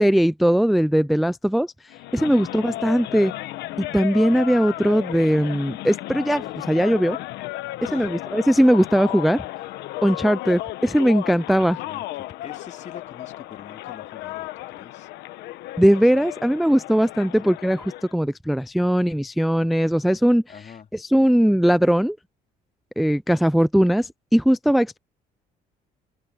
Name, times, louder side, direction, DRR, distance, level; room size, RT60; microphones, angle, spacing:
voice 1, 0.0-1.7 2.1-3.3 3.8-7.2 7.9-9.4 10.0-11.8 15.8-17.8 18.1-20.4 21.0-22.2 23.0-25.0, equal, ahead, 0.3 m, -19 dB
sound 1, 1.9-18.1, left 16 dB, 85° left, 1.2 m, -34 dB
voice 2, 7.8-8.1 11.5-15.1 17.3-17.5 20.5-20.9, left 7 dB, 45° left, 2.9 m, -43 dB
open air
cardioid pair, 110°, 17 cm